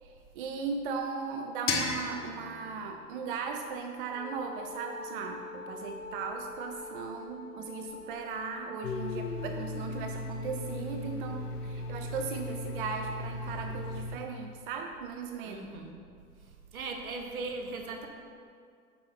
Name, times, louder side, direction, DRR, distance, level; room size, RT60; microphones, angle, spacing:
voice 1, 0.0-15.8, right 5 dB, 35° right, 4 dB, 0.5 m, -37 dB
sound 1, 1.7-4.5, left 4 dB, 25° left, 0.9 m, -36 dB
Wind instrument woodwind instrument, 4.1-14.1, left 3 dB, 40° left, 0.4 m, -46 dB
Domestic sounds home sounds, 8.8-14.2, left 1 dB, 75° left, 0.7 m, -37 dB
voice 2, 15.4-16.0 16.7-18.1, right 3 dB, 65° right, 3 dB, 1.2 m, -38 dB
8.6 x 5.6 x 4.1 m, 2.2 s
figure-of-eight pair, 100°, 46 cm